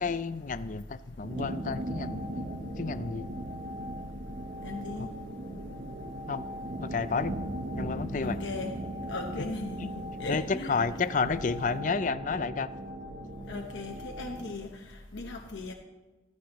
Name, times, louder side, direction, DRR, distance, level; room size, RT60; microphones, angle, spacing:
voice 1, 0.0-2.5 2.8-3.3 5.5-5.8 6.3-6.4 6.8-7.4 7.8-8.4 10.3-12.7, left 4 dB, 45° left, 14 dB, 0.4 m, -31 dB
sound 1, 1.2-14.6, right 1 dB, 45° right, 0.9 m, -38 dB
voice 2, 4.6-5.1 8.2-8.8 9.0-9.9 10.2-10.9 13.5-14.7 15.1-15.7, left 2 dB, 80° left, 2 dB, 1.0 m, -37 dB
15.0 x 14.5 x 3.1 m, 1.2 s
head